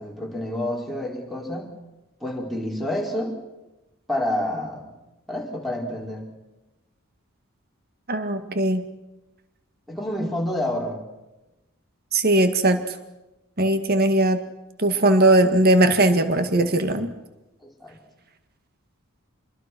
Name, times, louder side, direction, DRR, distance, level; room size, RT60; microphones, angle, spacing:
voice 1, 0.0-1.7 2.2-3.3 4.1-4.9 5.3-6.3 9.9-11.0 17.6-18.0, left 1 dB, ahead, 0 dB, 4.9 m, -28 dB
voice 2, 8.1-8.8 12.1-12.8 13.6-14.4 14.8-17.1, right 1 dB, 45° right, 8 dB, 1.9 m, -19 dB
28.0 x 22.0 x 6.2 m, 0.99 s
head